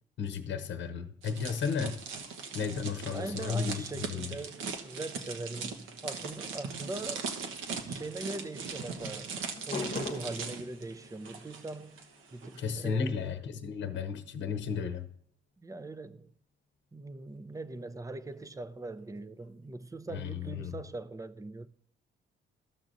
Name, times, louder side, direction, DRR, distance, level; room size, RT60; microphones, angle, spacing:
voice 1, 0.2-2.0 2.5-3.8 4.1-4.2 12.6-15.1 20.1-20.7, left 6 dB, 65° left, 0.8 m, -33 dB
sound 1, 1.2-12.0 12.3-12.6, right 5 dB, 85° right, 1.1 m, -40 dB
voice 2, 3.1-7.3 7.9-9.4 9.7-13.3 15.6-16.3 16.9-21.7, right 2 dB, 15° right, 0.6 m, -41 dB
sound 2, 8.4-15.2 17.0-20.0, left 4 dB, 40° left, 1.0 m, -47 dB
14.5 x 6.1 x 2.6 m
cardioid pair, 90°, 20 cm